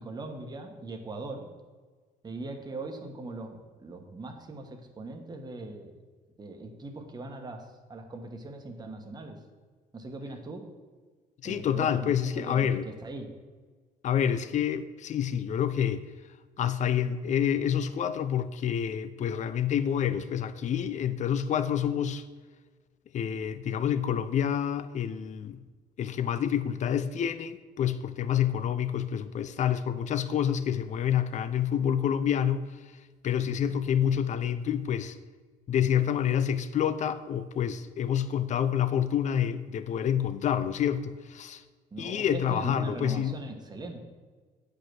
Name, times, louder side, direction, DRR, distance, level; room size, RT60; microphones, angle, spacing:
voice 1, 0.0-1.5 2.2-5.9 6.4-9.4 9.9-10.7 11.4-13.3 33.4-33.7 41.9-44.0, right 2 dB, 25° right, 1.2 m, -40 dB
voice 2, 11.4-12.9 14.0-16.0 16.6-22.2 23.1-25.6 26.0-32.7 33.2-35.2 35.7-41.6 42.0-43.3, left 9 dB, 45° left, 0.5 m, -28 dB
8.5 x 5.2 x 6.1 m
cardioid pair, 110°, 17 cm